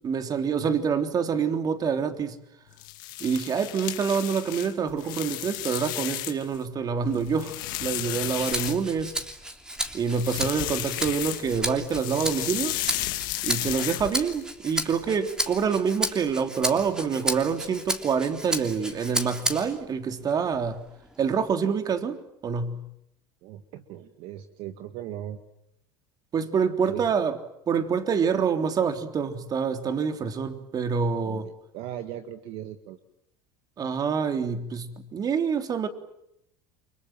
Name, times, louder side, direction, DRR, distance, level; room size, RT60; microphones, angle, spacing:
voice 1, 0.0-2.4 3.2-9.1 9.9-12.8 13.4-20.8 21.2-22.8 26.3-27.4 27.7-31.5 33.8-35.9, right 6 dB, 35° right, 3.4 m, -26 dB
sound 1, 2.7-6.6 7.0-9.2 10.0-11.6 11.9-14.4, left 17 dB, 75° left, 2.4 m, -33 dB
Rattle (instrument), 8.4-19.8 20.3-21.5, right 1 dB, 5° right, 3.2 m, -33 dB
voice 2, 23.4-25.4 26.8-27.0 31.2-33.0, right 11 dB, 60° right, 1.8 m, -38 dB
30.0 x 24.5 x 7.6 m
hypercardioid pair, 95°, 11 cm